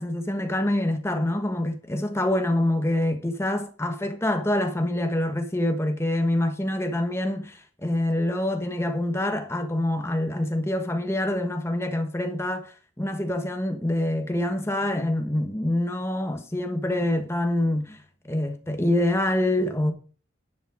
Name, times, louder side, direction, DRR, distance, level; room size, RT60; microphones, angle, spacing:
voice 1, 0.0-18.0 18.2-19.9, left 1 dB, 15° left, 1.3 m, -26 dB
11.0 x 7.4 x 4.9 m
head